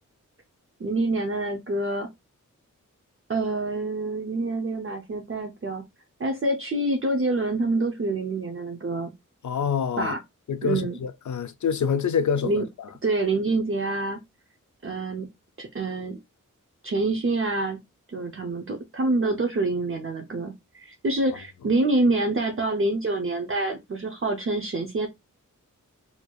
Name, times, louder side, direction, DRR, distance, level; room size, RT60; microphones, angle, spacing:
voice 1, 0.8-2.1 3.3-5.8 6.2-9.1 10.0-10.2 10.6-11.0 12.4-12.6 13.0-14.2 14.8-15.3 15.6-16.2 16.8-17.8 18.1-25.1, right 2 dB, 40° right, 0.6 m, -26 dB
voice 2, 9.4-10.1 10.5-12.9, left 6 dB, 65° left, 0.5 m, -26 dB
4.5 x 2.8 x 2.3 m
wide cardioid pair, 65°, 32 cm